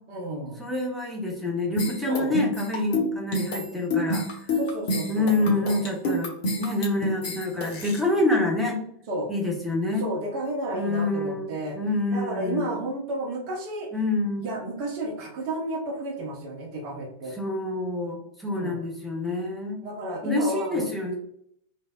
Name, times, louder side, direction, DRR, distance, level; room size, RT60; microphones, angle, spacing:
voice 1, 0.1-0.6 2.1-2.4 4.5-5.8 9.1-9.3 10.0-11.8 12.1-13.9 14.4-17.3 18.6-18.8 19.8-20.8, right 1 dB, 40° right, 0 dB, 0.8 m, -32 dB
voice 2, 0.6-4.5 5.1-8.8 9.3-10.1 10.7-12.8 13.9-14.5 17.4-19.8 20.2-21.2, left 2 dB, ahead, -1 dB, 0.8 m, -27 dB
sound 1, 1.8-8.0, left 1 dB, 45° left, 0.8 m, -28 dB
3.2 x 2.6 x 2.2 m, 0.70 s
figure-of-eight pair, 90°, 0 cm